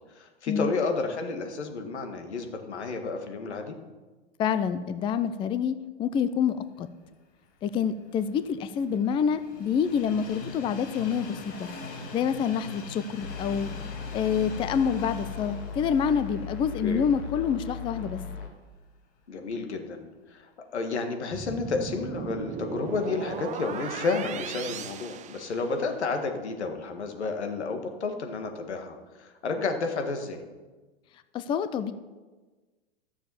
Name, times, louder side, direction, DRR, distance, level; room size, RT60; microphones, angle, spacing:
voice 1, 0.2-3.8 16.8-17.0 19.3-30.4, left 4 dB, 90° left, 5 dB, 1.8 m, -31 dB
voice 2, 4.4-6.9 7.6-11.7 12.1-13.8 14.1-18.2 31.3-31.9, left 7 dB, 15° left, 12 dB, 0.4 m, -27 dB
Train, 7.8-17.9 18.3-18.4 19.5-19.6, left 2 dB, 45° left, 4.2 m, -43 dB
sound 1, 13.2-18.5, left 6 dB, 70° left, 2.2 m, -38 dB
sound 2, 21.3-26.1, right 7 dB, 20° right, 0.7 m, -37 dB
12.0 x 7.0 x 7.1 m, 1.3 s
hypercardioid pair, 115°, 33 cm